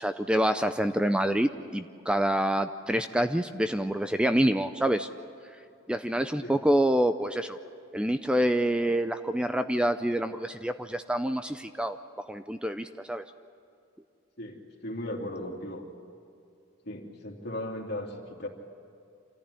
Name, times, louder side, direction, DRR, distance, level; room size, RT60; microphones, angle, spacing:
voice 1, 0.0-5.1 5.9-7.6 7.9-13.2, right 1 dB, 5° right, 9 dB, 0.5 m, -27 dB
voice 2, 14.4-15.8 16.8-18.5, left 1 dB, 55° left, 1 dB, 2.9 m, -37 dB
26.5 x 14.5 x 9.8 m, 2.5 s
head